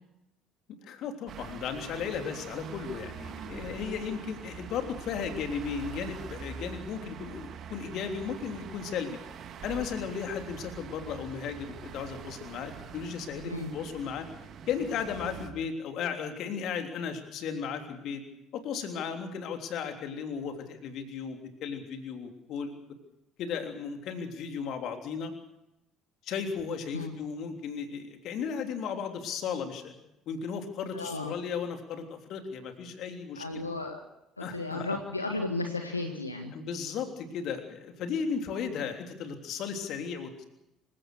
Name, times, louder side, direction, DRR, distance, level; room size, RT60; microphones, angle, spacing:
voice 1, 0.8-9.2 9.6-14.3 14.7-18.2 18.5-22.7 23.4-25.3 26.2-29.9 30.3-33.6 34.4-35.0 36.5-40.4, left 6 dB, 50° left, 5 dB, 3.3 m, -35 dB
sound 1, 1.3-15.5, right 7 dB, 45° right, 2.3 m, -44 dB
voice 2, 30.9-31.3 33.3-34.0 34.4-36.5, left 2 dB, 85° left, 4 dB, 1.7 m, -34 dB
27.0 x 16.5 x 6.5 m, 0.86 s
figure-of-eight pair, 55°, 0 cm